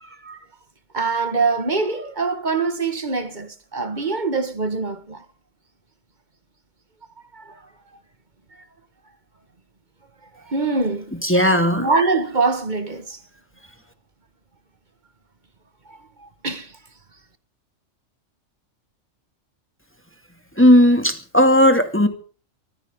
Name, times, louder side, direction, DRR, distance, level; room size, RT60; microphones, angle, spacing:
voice 1, 0.0-0.4 0.9-5.2 7.3-7.5 10.5-11.1 11.8-13.2 15.9-16.7, right 4 dB, 35° right, 1.6 m, -24 dB
voice 2, 11.2-11.9 20.6-22.1, equal, 10° left, 2.3 m, -15 dB
23.5 x 15.0 x 3.7 m
omnidirectional pair, 1.3 m